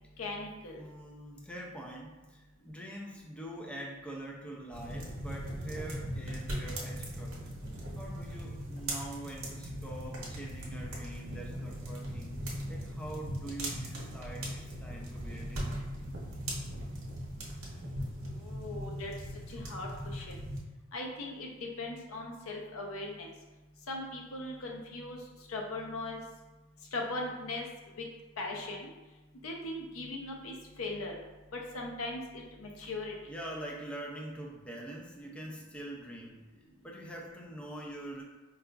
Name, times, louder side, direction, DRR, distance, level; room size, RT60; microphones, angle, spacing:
voice 1, 0.2-0.8 18.2-19.1 19.5-20.4 20.9-21.5 21.8-23.3 23.9-25.2 25.5-26.2 26.9-27.7 28.0-28.1 28.4-28.9 29.4-31.2 31.5-33.1, left 2 dB, 80° left, 1 dB, 0.6 m, -39 dB
voice 2, 0.8-7.5 8.0-12.3 12.7-15.7 32.8-32.9 33.3-36.4 36.8-38.2, right 1 dB, 5° left, -2 dB, 0.3 m, -44 dB
sound 1, 4.7-20.6, equal, 75° right, 0.8 m, -39 dB
sound 2, 13.9-18.0, equal, 60° left, 1.3 m, -50 dB
4.7 x 2.4 x 2.3 m, 1.1 s
head